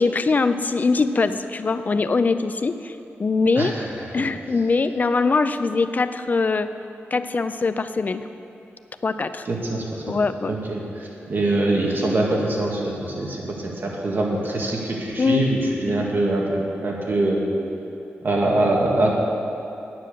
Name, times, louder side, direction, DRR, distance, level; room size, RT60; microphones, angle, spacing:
voice 1, 0.0-3.7 4.1-6.7 7.1-8.3 9.0-9.5 10.1-10.5 15.2-15.5 15.9-16.0, left 4 dB, 40° left, 10 dB, 0.5 m, -22 dB
voice 2, 3.6-4.3 9.5-17.4 18.2-19.1, right 2 dB, 55° right, -2 dB, 2.0 m, -24 dB
9.8 x 9.1 x 6.7 m, 2.9 s
wide cardioid pair, 110°, 4 cm